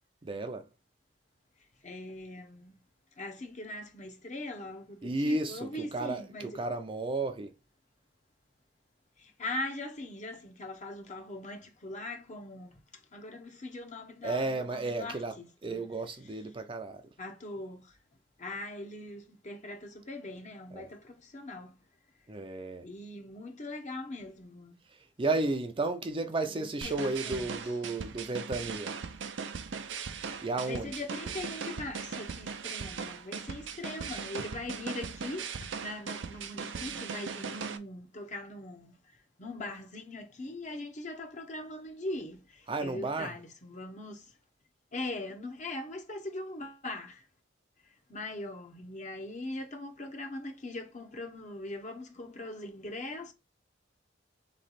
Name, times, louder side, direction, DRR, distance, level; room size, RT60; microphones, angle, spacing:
voice 1, 0.2-0.6 5.0-7.5 14.2-15.3 15.6-17.0 20.7-20.9 22.3-22.9 25.2-29.0 30.4-30.9 42.7-43.3, right 2 dB, 30° right, 0.5 m, -33 dB
voice 2, 1.8-2.7 3.2-6.7 9.2-12.8 13.1-15.8 17.2-18.0 18.4-21.8 22.8-24.8 26.4-27.7 30.3-39.0 39.4-44.3 44.9-47.3 48.1-53.3, left 2 dB, 40° left, 0.9 m, -41 dB
sound 1, 26.8-37.8, right 6 dB, 70° right, 0.6 m, -39 dB
3.9 x 3.2 x 4.0 m
head